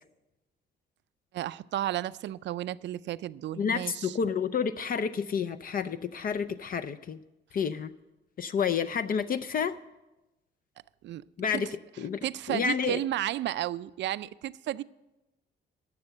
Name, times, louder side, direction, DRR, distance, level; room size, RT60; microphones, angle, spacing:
voice 1, 1.3-4.2 11.0-11.2 11.5-11.7 12.2-14.8, right 13 dB, 65° right, 0.4 m, -33 dB
voice 2, 3.6-7.2 7.5-7.9 8.4-9.7 11.4-11.7 12.0-12.2 12.5-13.0, left 6 dB, 45° left, 0.5 m, -29 dB
11.5 x 6.8 x 7.7 m
cardioid pair, 90°, 20 cm